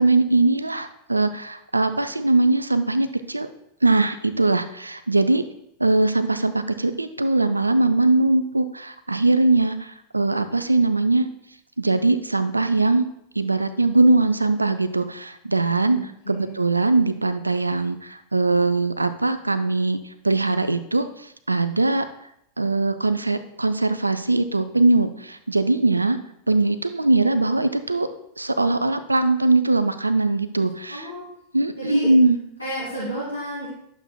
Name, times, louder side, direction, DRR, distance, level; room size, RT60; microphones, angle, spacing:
voice 1, 0.0-3.5 3.8-5.4 5.8-11.3 11.8-13.1 13.4-20.0 20.2-22.1 22.6-26.2 26.5-28.1 28.4-31.1 31.5-32.4, right 2 dB, 85° right, 12 dB, 0.4 m, -21 dB
voice 2, 15.9-16.5 30.9-31.2 31.6-32.1 32.6-33.7, right 1 dB, 85° left, -8 dB, 2.3 m, -32 dB
11.0 x 7.0 x 2.3 m, 0.77 s
figure-of-eight pair, 90°, 0 cm